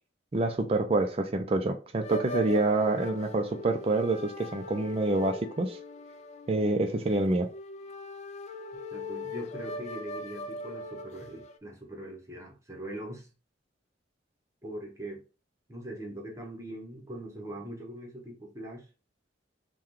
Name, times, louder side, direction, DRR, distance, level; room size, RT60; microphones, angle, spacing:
voice 1, 0.3-5.8 6.5-7.5, right 2 dB, 30° right, 4 dB, 0.4 m, -27 dB
sound 1, 2.0-11.6, left 2 dB, 40° left, 0.3 m, -40 dB
voice 2, 8.9-13.3 14.6-15.2 15.7-18.9, right 1 dB, 15° right, 0 dB, 0.9 m, -41 dB
5.6 x 2.3 x 3.1 m, 0.33 s
head